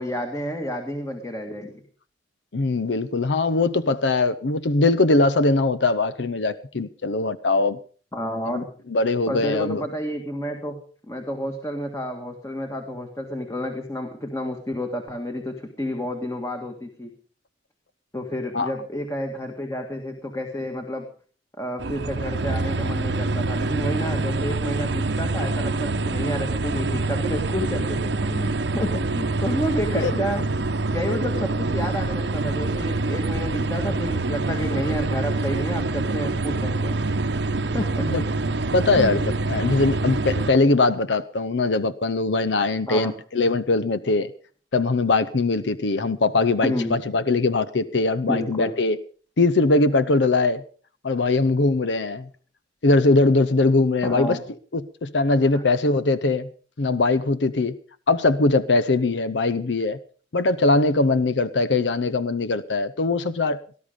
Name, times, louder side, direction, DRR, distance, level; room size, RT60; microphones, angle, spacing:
voice 1, 0.0-1.8 8.1-8.7 9.3-10.8 11.1-17.1 18.1-21.1 21.6-30.5 30.9-37.0 37.7-38.1 38.9-39.1 42.9-43.1 46.6-47.0 48.3-48.7 54.0-54.4 55.5-55.6, equal, 15° left, 1.8 m, -30 dB
voice 2, 2.5-7.8 8.5-8.6 8.9-9.8 18.5-18.8 29.9-30.1 38.1-38.2 38.7-39.2 39.5-44.3 44.7-49.0 49.4-50.6 51.0-52.3 52.8-54.4 54.7-56.5 56.8-57.7 58.1-60.0 60.3-63.6, left 3 dB, 75° left, 0.7 m, -21 dB
sound 1, 21.8-40.5, right 2 dB, 70° right, 0.8 m, -25 dB
18.5 x 11.5 x 5.2 m
head